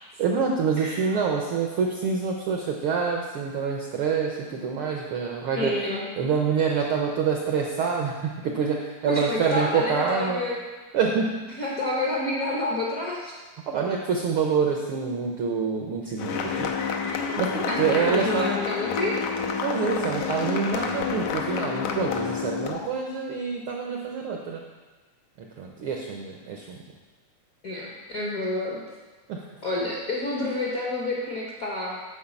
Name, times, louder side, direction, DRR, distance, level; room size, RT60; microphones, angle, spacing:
voice 1, 0.2-5.7 6.2-10.4 10.9-11.4 13.7-16.7 17.4-18.5 19.6-24.6 25.6-26.8 29.3-29.4, right 6 dB, 75° right, 0 dB, 1.2 m, -26 dB
voice 2, 0.8-1.3 5.6-6.0 9.0-10.6 11.5-13.4 16.5-16.7 17.7-19.3 27.6-28.8 29.6-32.0, left 1 dB, 55° left, -5 dB, 0.9 m, -29 dB
sound 1, 16.2-23.0, left 6 dB, 85° left, 2.2 m, -29 dB
9.2 x 4.8 x 7.0 m, 1.3 s
omnidirectional pair, 3.3 m